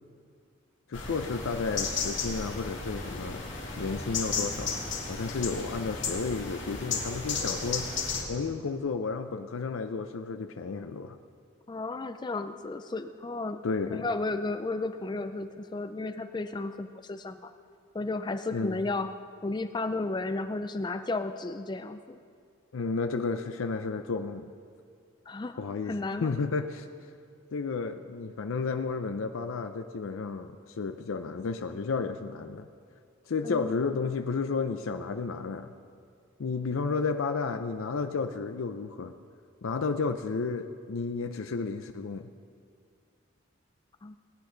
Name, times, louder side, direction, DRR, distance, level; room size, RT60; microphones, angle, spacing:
voice 1, 0.9-3.4 3.8-11.2 13.6-14.1 18.5-18.8 22.7-24.5 25.6-26.9 27.5-32.7 33.3-35.7 36.4-39.1 39.6-42.3, left 4 dB, 80° left, 7 dB, 0.5 m, -32 dB
sound 1, 0.9-8.2, left 4 dB, 60° left, 2.2 m, -34 dB
voice 2, 11.7-13.6 13.9-17.5 17.9-19.1 19.4-22.2 25.3-26.3 33.4-33.8 44.0-44.2, left 2 dB, 20° left, 9 dB, 0.3 m, -33 dB
19.0 x 9.7 x 3.9 m, 2.2 s
head